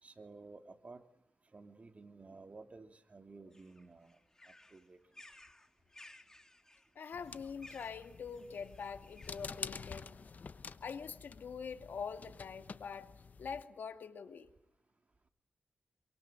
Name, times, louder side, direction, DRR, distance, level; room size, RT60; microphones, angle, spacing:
voice 1, 0.0-1.0 1.5-4.2 4.7-5.0, right 3 dB, 45° right, 6 dB, 3.1 m, -53 dB
sound 1, 3.5-9.6, left 1 dB, 20° left, 2.7 m, -59 dB
voice 2, 7.0-10.1 10.8-13.1 13.4-14.5, left 6 dB, 90° left, 8 dB, 2.3 m, -44 dB
sound 2, 7.1-13.6, left 5 dB, 60° left, 1.1 m, -49 dB
27.5 x 24.5 x 8.5 m, 0.75 s
wide cardioid pair, 80°, 3 cm